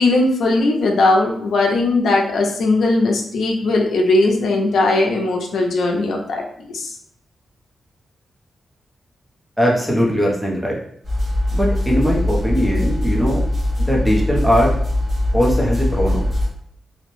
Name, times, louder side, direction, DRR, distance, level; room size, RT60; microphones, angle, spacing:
voice 1, 0.0-6.4 6.7-7.0, left 2 dB, 75° left, 1 dB, 0.4 m, -18 dB
voice 2, 9.6-10.8 11.5-13.4 13.9-14.7 15.3-16.3, equal, 5° right, -3 dB, 0.5 m, -19 dB
sound 1, 11.0-16.5, left 1 dB, 40° right, 0.9 m, -21 dB
2.6 x 2.0 x 2.9 m, 0.66 s
wide cardioid pair, 175°, 0 cm